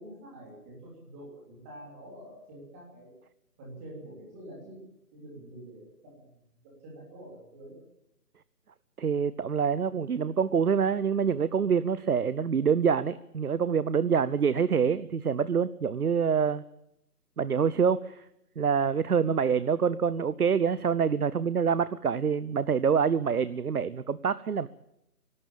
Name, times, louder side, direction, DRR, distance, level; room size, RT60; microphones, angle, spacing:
voice 1, 0.0-3.1 3.6-4.8 5.1-7.7, right 1 dB, 10° right, -4 dB, 3.2 m, -47 dB
voice 2, 9.0-16.6 17.4-18.2 18.6-24.7, right 6 dB, 70° right, 16 dB, 0.8 m, -26 dB
24.5 x 12.5 x 8.7 m, 0.81 s
figure-of-eight pair, 175°, 47 cm